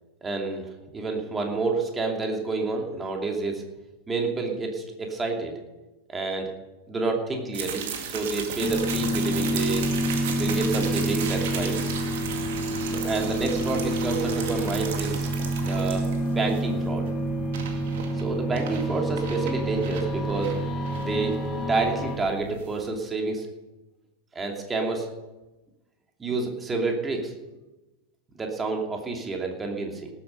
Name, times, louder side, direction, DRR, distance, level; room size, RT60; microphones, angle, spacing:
voice 1, 0.2-0.6 0.9-3.6 4.1-5.6 6.1-6.5 6.9-9.9 10.4-11.7 12.9-15.3 15.6-17.1 18.2-20.6 20.9-23.5 24.3-25.1 26.2-27.3 28.4-30.1, right 3 dB, 15° right, 2 dB, 2.7 m, -29 dB
sound 1, 7.5-22.9, right 7 dB, 55° right, 2.2 m, -36 dB
sound 2, 8.6-22.2, right 1 dB, 25° left, 2.5 m, -28 dB
18.5 x 8.6 x 5.5 m, 1.1 s
figure-of-eight pair, 90°, 0 cm